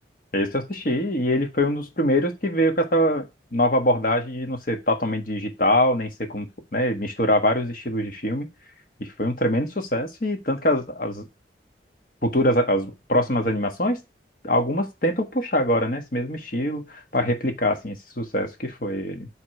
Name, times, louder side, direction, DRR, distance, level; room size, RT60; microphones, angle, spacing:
voice 1, 0.3-8.5 9.0-11.3 12.2-14.0 14.4-19.3, left 1 dB, 50° left, 5 dB, 1.4 m, -24 dB
7.9 x 3.6 x 4.5 m, 0.24 s
head